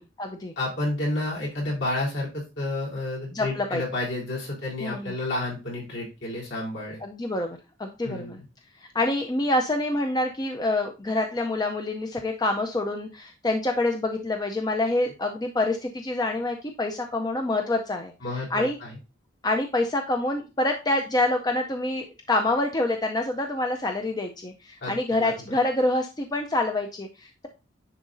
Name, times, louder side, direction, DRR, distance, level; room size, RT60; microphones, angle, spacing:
voice 1, 0.0-0.5 3.3-3.8 4.8-5.1 7.0-8.4 8.9-18.1 18.5-18.8 19.4-27.5, left 2 dB, 20° left, 4 dB, 0.5 m, -26 dB
voice 2, 0.6-7.0 8.0-8.4 18.2-19.0 24.8-25.3, left 2 dB, 65° left, -5 dB, 4.0 m, -30 dB
10.0 x 4.0 x 2.6 m, 0.29 s
head